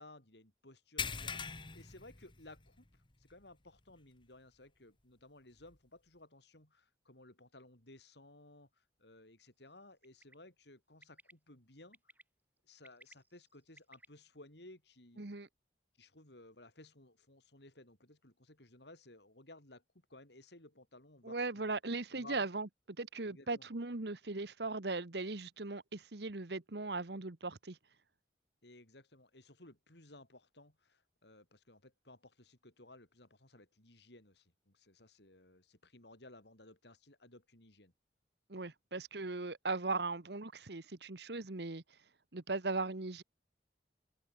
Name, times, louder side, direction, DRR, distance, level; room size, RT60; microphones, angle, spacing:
voice 1, 0.0-2.9 3.2-12.0 12.7-15.2 16.0-21.7 22.1-22.4 23.3-23.7 28.6-37.9, left 2 dB, 70° left, 5.3 m, -58 dB
sound 1, 1.0-2.9 3.2-3.4 3.9-4.0 5.7-5.8, left 6 dB, 25° left, 1.5 m, -41 dB
Bird, 10.0-10.3 11.0-11.3 11.9-12.2 12.7-14.1, right 2 dB, 10° right, 7.4 m, -59 dB
voice 2, 15.2-15.5 21.2-22.7 23.0-27.8 38.5-41.8 42.3-43.2, right 3 dB, 70° right, 1.3 m, -38 dB
head